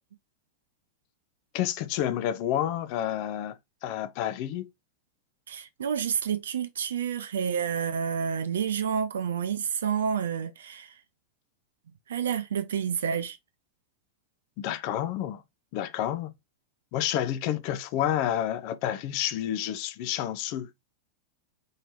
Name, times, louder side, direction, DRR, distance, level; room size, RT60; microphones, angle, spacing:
voice 1, 1.5-4.7 14.6-15.4 15.7-16.3 16.9-20.7, left 11 dB, 45° left, 0.5 m, -29 dB
voice 2, 5.5-10.9 12.1-13.4, right 7 dB, 65° right, 0.5 m, -29 dB
4.6 x 3.2 x 2.9 m
figure-of-eight pair, 90°, 0 cm